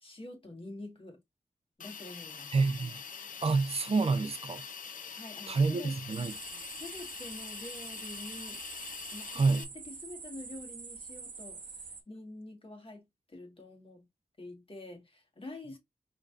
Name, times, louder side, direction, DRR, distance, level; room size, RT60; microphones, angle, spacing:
voice 1, 0.0-1.2 1.8-2.5 5.1-6.0 6.5-8.6 9.1-14.1 14.4-15.8, left 2 dB, 40° left, 1.5 m, -47 dB
Hiss, 1.8-9.6, left 6 dB, 80° left, 0.5 m, -44 dB
voice 2, 2.5-3.0 3.4-4.6 5.5-6.3 9.3-9.7, right 4 dB, 50° right, 0.5 m, -28 dB
sound 1, 6.1-12.0, right 4 dB, 85° right, 0.9 m, -46 dB
5.1 x 2.7 x 2.5 m
wide cardioid pair, 65°, 14 cm